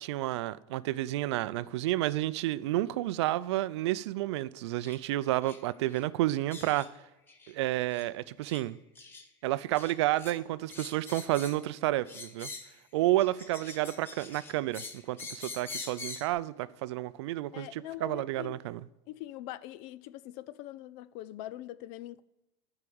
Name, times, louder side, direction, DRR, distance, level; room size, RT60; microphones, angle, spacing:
voice 1, 0.0-6.9 7.5-8.8 9.4-12.5 12.9-18.8, right 16 dB, 80° right, 0.5 m, -30 dB
sound 1, 4.8-5.0 5.4-5.6 5.9-6.0 6.5-6.9 7.3-7.5 7.9-8.1 8.5-8.6 8.9-9.2 9.7-10.3 10.7-11.7 12.1-12.8 13.2-16.3, left 3 dB, 15° left, 0.9 m, -44 dB
voice 2, 17.5-18.6 19.1-22.2, left 14 dB, 40° left, 0.4 m, -43 dB
12.5 x 4.9 x 7.0 m
supercardioid pair, 175°, 14 cm